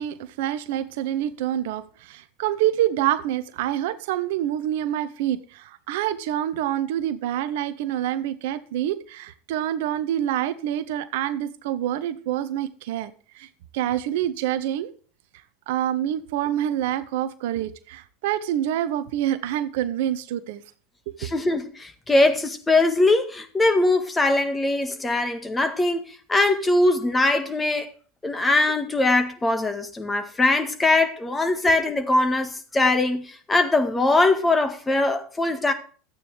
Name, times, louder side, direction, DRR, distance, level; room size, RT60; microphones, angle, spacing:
voice 1, 0.0-13.5 13.7-14.9 15.7-20.6, right 11 dB, 65° right, 0.8 m, -26 dB
voice 2, 21.2-27.9 28.2-35.7, left 2 dB, 15° left, 1.7 m, -21 dB
12.5 x 8.9 x 3.4 m
hypercardioid pair, 80°, 0 cm